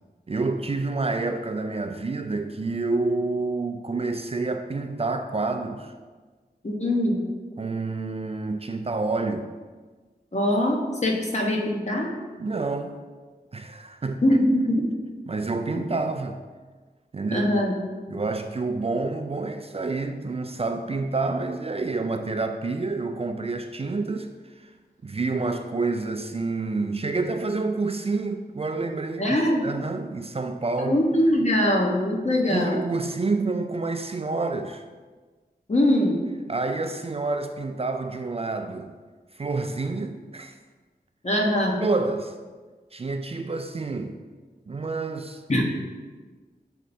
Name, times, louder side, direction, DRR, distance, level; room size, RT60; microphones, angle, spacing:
voice 1, 0.3-5.9 7.6-9.5 12.4-13.0 13.5-14.4 15.3-16.4 17.1-17.5 18.1-24.3 24.6-24.7 25.0-29.4 29.6-31.0 32.5-34.8 36.5-38.9 39.3-40.6 41.8-42.3 42.9-44.2 44.7-45.4, right 3 dB, 35° right, 0.3 m, -28 dB
voice 2, 6.6-7.2 10.3-10.8 11.0-12.1 14.2-14.9 15.7-15.8 17.3-17.7 18.1-18.2 29.2-29.7 30.8-32.8 35.7-36.2 41.2-41.8 45.5-45.6, left 1 dB, 40° left, 1.0 m, -22 dB
7.3 x 3.3 x 4.2 m
wide cardioid pair, 80°, 17 cm